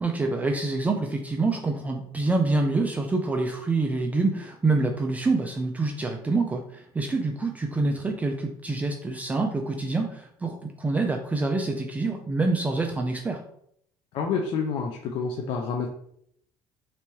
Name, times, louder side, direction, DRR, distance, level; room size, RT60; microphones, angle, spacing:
voice 1, 0.0-13.4, right 3 dB, 15° right, 2 dB, 0.3 m, -26 dB
voice 2, 14.1-15.9, left 5 dB, 60° left, 2 dB, 0.5 m, -28 dB
3.3 x 3.0 x 3.0 m, 0.69 s
cardioid pair, 115°, 10 cm